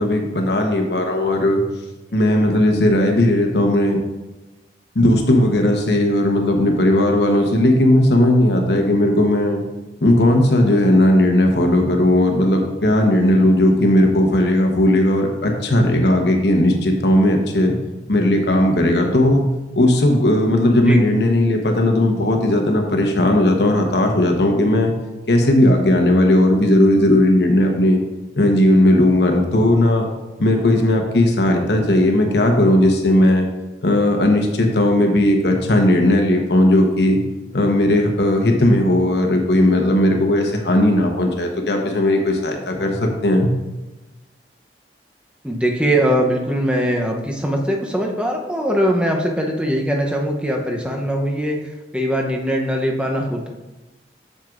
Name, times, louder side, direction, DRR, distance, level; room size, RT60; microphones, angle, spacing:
voice 1, 0.0-1.6 2.1-4.0 4.9-9.6 10.0-17.7 18.1-19.5 19.7-24.9 25.3-28.0 28.4-30.1 30.4-33.5 33.8-37.2 37.5-43.5, left 1 dB, 75° left, 3 dB, 1.0 m, -16 dB
voice 2, 45.4-51.6 51.9-53.5, equal, 5° right, 0 dB, 0.7 m, -21 dB
7.5 x 6.6 x 2.5 m, 1.1 s
head